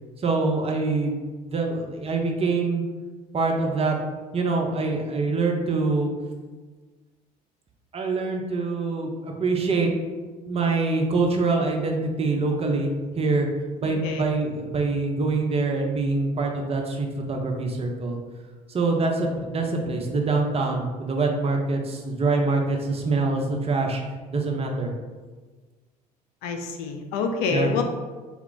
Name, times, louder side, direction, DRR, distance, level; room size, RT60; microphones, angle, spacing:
voice 1, 0.2-1.2 1.4-2.8 3.3-4.0 4.3-6.1 7.9-9.9 10.5-13.5 13.8-18.2 18.7-24.0 24.3-24.9 27.5-27.7, right 3 dB, 30° right, 1 dB, 0.7 m, -25 dB
voice 2, 13.8-14.2 26.4-27.8, left 5 dB, 65° left, 5 dB, 0.5 m, -27 dB
4.3 x 2.3 x 3.8 m, 1.4 s
hypercardioid pair, 65°, 20 cm